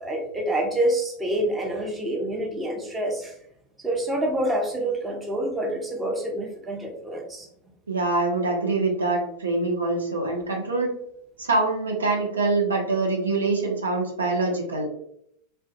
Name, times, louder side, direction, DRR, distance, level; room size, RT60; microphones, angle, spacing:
voice 1, 0.0-3.3 3.8-7.5, right 1 dB, 15° right, 1 dB, 0.6 m, -27 dB
voice 2, 7.9-10.9 11.4-14.9, right 3 dB, 75° right, 0 dB, 0.5 m, -24 dB
2.2 x 2.1 x 2.7 m, 0.72 s
figure-of-eight pair, 85°, 0 cm